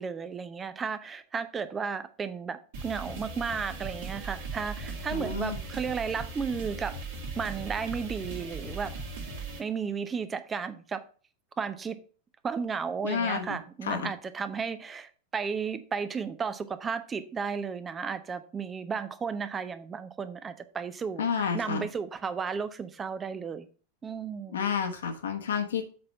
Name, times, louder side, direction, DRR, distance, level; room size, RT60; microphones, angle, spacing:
voice 1, 0.0-7.0 7.4-8.9 9.6-11.0 11.6-12.0 12.4-23.7 24.0-24.6, right 6 dB, 20° right, 0.6 m, -34 dB
sound 1, 2.7-9.6, right 4 dB, 55° right, 2.0 m, -38 dB
voice 2, 5.1-5.6 13.0-14.1 21.2-21.9 24.5-25.9, left 6 dB, 65° left, 1.2 m, -30 dB
7.6 x 4.2 x 5.5 m
figure-of-eight pair, 90°, 0 cm